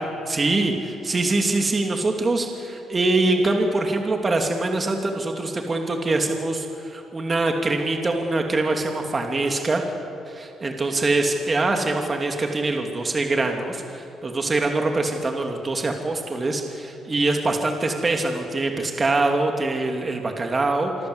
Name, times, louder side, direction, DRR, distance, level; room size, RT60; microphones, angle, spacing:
voice 1, 0.0-9.8 10.3-21.1, right 2 dB, 30° right, 3 dB, 2.7 m, -24 dB
26.5 x 22.5 x 8.1 m, 2.6 s
cardioid pair, 90°, 0 cm